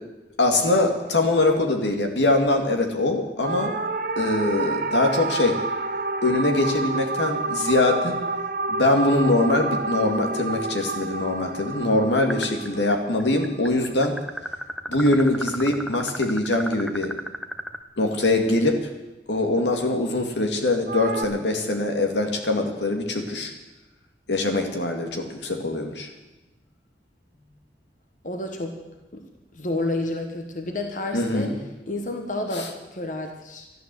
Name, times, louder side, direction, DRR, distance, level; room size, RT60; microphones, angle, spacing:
voice 1, 0.4-3.8 4.2-5.6 6.2-8.2 8.7-14.2 14.9-17.1 18.0-18.8 19.3-23.5 24.3-26.1 31.1-31.6 32.5-32.7, left 2 dB, 85° left, 3 dB, 2.3 m, -23 dB
sound 1, 3.4-13.9 20.9-21.2, right 3 dB, 50° right, 1.0 m, -29 dB
sound 2, 12.3-12.9 13.2-17.8, equal, ahead, 0.7 m, -33 dB
voice 2, 28.2-28.8 29.1-29.2 29.5-31.5 31.9-33.7, left 2 dB, 45° left, 4 dB, 1.4 m, -30 dB
13.5 x 12.0 x 7.8 m, 1.0 s
head